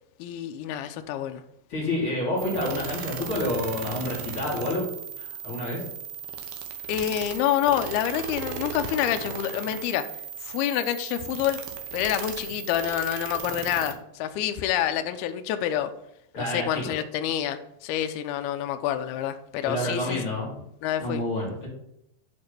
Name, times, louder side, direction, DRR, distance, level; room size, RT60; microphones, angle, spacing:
voice 1, 0.2-1.4 6.9-10.0 10.4-11.6 11.9-15.9 16.4-20.2 20.8-21.2, left 11 dB, 80° left, 7 dB, 2.4 m, -27 dB
voice 2, 1.7-4.9 5.2-5.8 16.3-16.9 19.6-20.5 21.0-21.7, left 1 dB, 40° left, -5 dB, 2.7 m, -29 dB
sound 1, 2.4-13.9, right 7 dB, 75° right, 2.5 m, -36 dB
8.8 x 3.7 x 6.5 m, 0.78 s
omnidirectional pair, 4.7 m